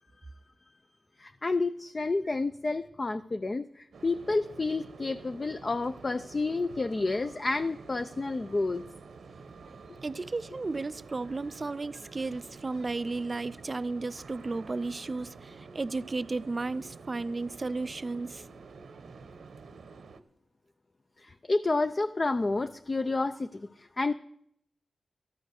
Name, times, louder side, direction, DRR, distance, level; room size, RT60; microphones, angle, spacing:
voice 1, 1.2-8.8 21.2-24.1, left 3 dB, 35° left, 0.5 m, -30 dB
sound 1, 3.9-20.2, right 4 dB, 90° right, 1.0 m, -49 dB
voice 2, 10.0-18.5, right 3 dB, 35° right, 0.4 m, -34 dB
13.5 x 10.5 x 6.5 m
wide cardioid pair, 115°, 0 cm